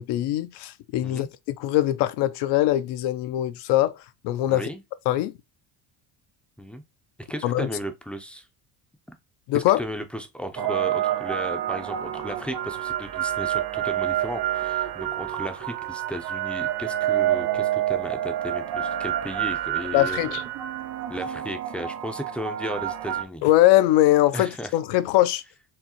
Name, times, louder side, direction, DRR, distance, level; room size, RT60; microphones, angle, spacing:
voice 1, 0.0-3.9 4.2-4.7 5.1-5.3 7.4-7.7 9.5-9.8 19.9-20.4 23.4-25.4, left 14 dB, 65° left, 0.6 m, -22 dB
voice 2, 4.5-4.8 6.6-6.8 7.2-8.5 9.5-20.3 21.1-23.4 24.3-24.7, equal, 5° left, 0.5 m, -35 dB
sound 1, 10.6-23.2, right 12 dB, 70° right, 0.8 m, -28 dB
4.8 x 3.0 x 2.9 m
supercardioid pair, 105°, 45 cm